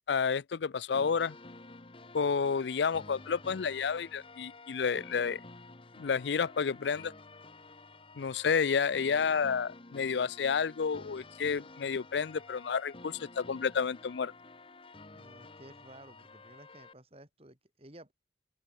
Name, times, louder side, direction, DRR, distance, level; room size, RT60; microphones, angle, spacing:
voice 1, 0.1-1.3 2.1-5.4 6.0-7.1 8.2-14.3, left 6 dB, 75° left, 0.5 m, -30 dB
sound 1, 0.9-16.9, left 2 dB, 30° left, 1.3 m, -51 dB
voice 2, 15.1-18.1, right 1 dB, 35° right, 4.3 m, -54 dB
open air
head